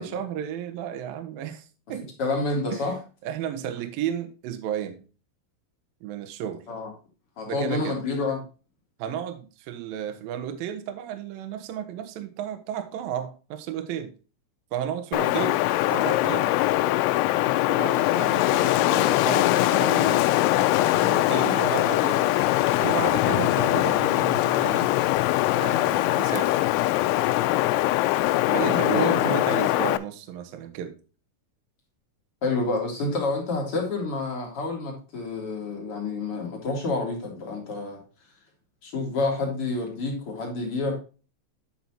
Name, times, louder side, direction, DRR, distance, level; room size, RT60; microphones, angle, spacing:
voice 1, 0.0-2.1 2.7-2.9 3.2-5.0 6.0-6.6 7.5-8.0 9.0-14.1 14.7-15.6 15.9-16.5 17.6-22.3 22.8-24.9 25.5-26.6 28.5-30.9, right 9 dB, 85° right, 2.0 m, -33 dB
voice 2, 2.2-3.0 6.7-6.9 7.4-8.4 15.3-15.4 28.6-29.4 32.4-38.0 38.8-41.0, left 3 dB, 45° left, 2.1 m, -28 dB
Wind, 15.1-30.0, left 17 dB, 85° left, 2.8 m, -22 dB
10.5 x 5.7 x 2.8 m
omnidirectional pair, 5.6 m